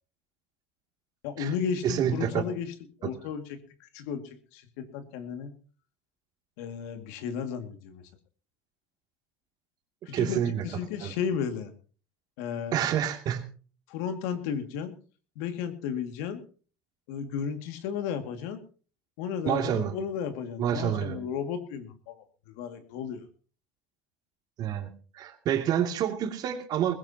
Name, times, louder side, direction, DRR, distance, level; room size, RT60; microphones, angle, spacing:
voice 1, 1.2-2.7 3.0-5.5 6.6-8.0 10.1-11.7 12.4-12.8 13.9-14.9 15.4-16.4 17.1-18.6 19.2-22.2 22.5-23.3, left 7 dB, 75° left, 8 dB, 2.2 m, -34 dB
voice 2, 1.8-2.4 10.1-10.6 11.0-11.1 12.7-13.4 19.4-19.9 20.6-21.2 24.6-24.9 25.1-26.9, right 10 dB, 50° right, 5 dB, 2.6 m, -28 dB
20.0 x 16.0 x 2.9 m, 0.39 s
supercardioid pair, 120°, 9 cm